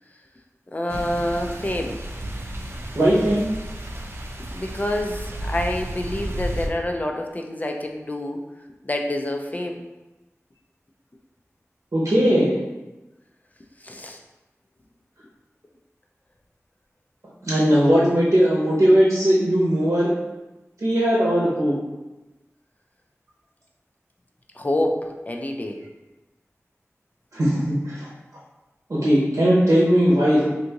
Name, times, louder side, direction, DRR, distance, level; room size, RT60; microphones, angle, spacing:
voice 1, 0.7-2.0 4.5-8.4 8.8-9.8 13.8-14.2 24.6-25.8, left 1 dB, 30° left, 3 dB, 0.4 m, -27 dB
sound 1, 0.9-6.7, right 1 dB, 45° right, 0.4 m, -32 dB
voice 2, 2.9-3.5 11.9-12.6 17.4-20.2 20.8-21.7 27.3-28.1 28.9-30.5, equal, 75° right, -7 dB, 0.8 m, -18 dB
3.5 x 2.6 x 2.8 m, 1.1 s
wide cardioid pair, 60°, 5 cm